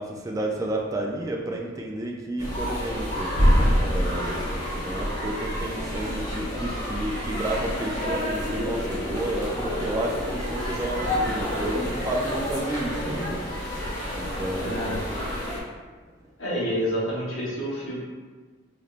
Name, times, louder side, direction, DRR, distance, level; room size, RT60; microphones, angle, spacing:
voice 1, 0.0-3.3 3.8-13.3 14.1-15.0, right 1 dB, 15° right, -1 dB, 0.3 m, -31 dB
sound 1, 2.4-15.6, equal, 40° left, 1.3 m, -27 dB
voice 2, 14.6-15.0 16.4-18.0, equal, 80° left, -6 dB, 1.1 m, -28 dB
4.0 x 3.2 x 2.5 m, 1.4 s
head